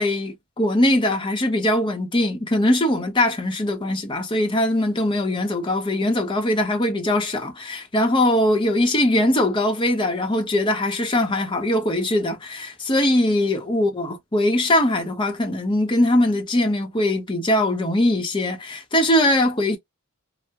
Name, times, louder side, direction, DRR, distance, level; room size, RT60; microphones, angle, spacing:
voice 1, 0.0-19.8, left 1 dB, 25° left, 0.8 m, -21 dB
3.3 x 2.1 x 2.8 m
head